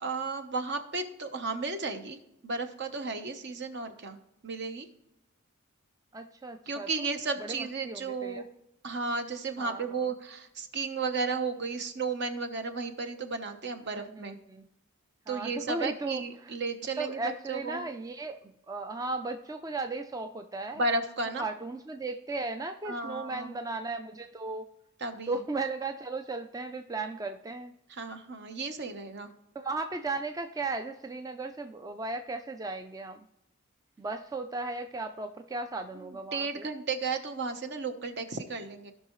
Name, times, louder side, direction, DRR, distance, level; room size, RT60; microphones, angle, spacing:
voice 1, 0.0-2.2 2.4-4.2 4.4-4.9 6.7-8.4 8.8-14.4 15.3-17.2 17.5-17.9 20.8-21.4 22.8-23.5 25.0-25.4 27.9-29.3 36.3-38.9, right 3 dB, 55° right, 8 dB, 1.0 m, -33 dB
voice 2, 6.1-7.1 7.4-8.5 9.6-10.1 13.9-14.7 15.3-16.6 17.0-20.8 21.4-24.7 25.3-27.7 29.5-33.3 34.0-36.7, right 3 dB, 15° right, 7 dB, 0.4 m, -36 dB
16.5 x 5.6 x 3.1 m, 0.82 s
head